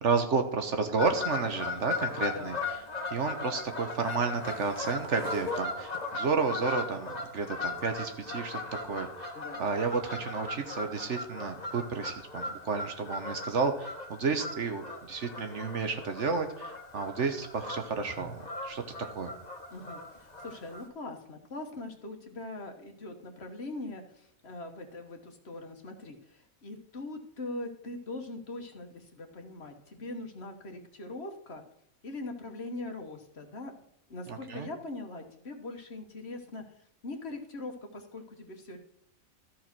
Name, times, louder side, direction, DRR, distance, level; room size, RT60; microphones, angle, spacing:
voice 1, 0.0-2.6 3.1-9.3 9.6-14.8 15.1-18.8 19.1-19.3 34.3-34.7, right 4 dB, 60° right, 7 dB, 1.4 m, -31 dB
Fowl / Bird vocalization bird call bird song, 1.0-20.9, left 3 dB, 30° left, 1.2 m, -38 dB
voice 2, 19.7-31.6 32.0-33.7 34.1-36.6 37.0-38.8, left 2 dB, 50° left, 5 dB, 1.4 m, -41 dB
13.5 x 4.7 x 6.0 m, 0.69 s
omnidirectional pair, 1.4 m